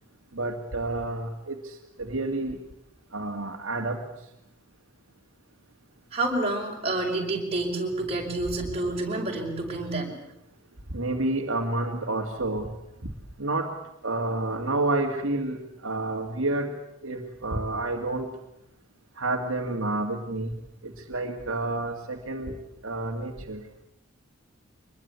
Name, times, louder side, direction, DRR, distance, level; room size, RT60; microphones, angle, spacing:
voice 1, 0.3-2.6 3.1-4.0 10.9-12.7 13.0-13.1 13.4-13.7 14.0-16.8 17.0-18.3 19.2-20.6 20.8-22.6 22.8-23.6, right 2 dB, 65° right, 2 dB, 2.3 m, -29 dB
voice 2, 6.1-10.2, right 2 dB, 30° right, -1 dB, 5.8 m, -28 dB
24.5 x 21.5 x 8.4 m, 0.80 s
head